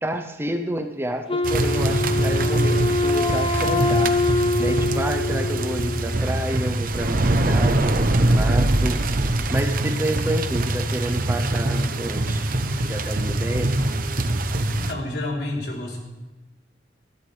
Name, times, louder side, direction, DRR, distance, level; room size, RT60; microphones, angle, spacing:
voice 1, 0.0-4.2 4.6-13.8, right 1 dB, 15° right, 6 dB, 0.7 m, -29 dB
Wind instrument woodwind instrument, 1.3-6.3, left 2 dB, 30° left, 0.6 m, -24 dB
sound 1, 1.4-14.9, right 1 dB, 50° right, 0.9 m, -23 dB
voice 2, 14.7-16.0, left 2 dB, 65° left, -2 dB, 3.7 m, -29 dB
19.5 x 14.0 x 3.4 m, 1.2 s
head